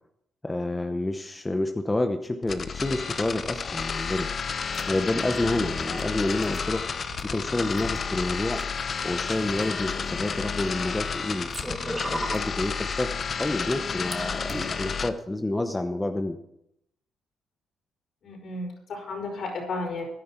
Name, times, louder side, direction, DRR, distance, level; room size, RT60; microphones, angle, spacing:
voice 1, 0.4-4.3 4.9-6.8 7.2-8.6 9.0-11.5 12.0-13.1 13.4-16.4, left 2 dB, 15° left, 6 dB, 0.9 m, -28 dB
sound 1, 2.4-15.1, left 6 dB, 45° left, 0.8 m, -31 dB
sound 2, 4.7-4.8 5.2-7.2 7.7-8.0 8.6-8.7 9.2-9.6 10.4-11.0 11.4-12.5 13.2-14.1 14.5-14.6, right 1 dB, 15° right, 2.0 m, -37 dB
voice 2, 18.2-20.1, left 3 dB, 60° left, 1 dB, 5.4 m, -33 dB
15.5 x 11.0 x 4.5 m, 0.78 s
cardioid pair, 90°, 0 cm